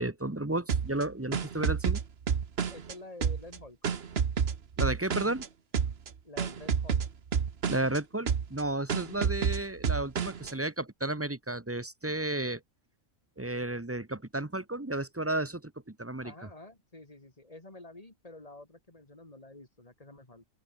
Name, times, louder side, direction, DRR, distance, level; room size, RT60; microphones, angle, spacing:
voice 1, 0.0-2.0 4.8-5.5 7.7-12.6 13.4-16.3, right 2 dB, 10° right, 1.1 m, -33 dB
sound 1, 0.7-2.9 3.2-5.5 5.7-6.1 6.4-8.0 8.3-8.6 8.9-10.5, right 7 dB, 50° right, 1.3 m, -29 dB
voice 2, 2.7-3.8 6.2-7.0 9.2-9.4 16.2-20.5, left 2 dB, 25° left, 3.4 m, -49 dB
open air
omnidirectional pair, 1.4 m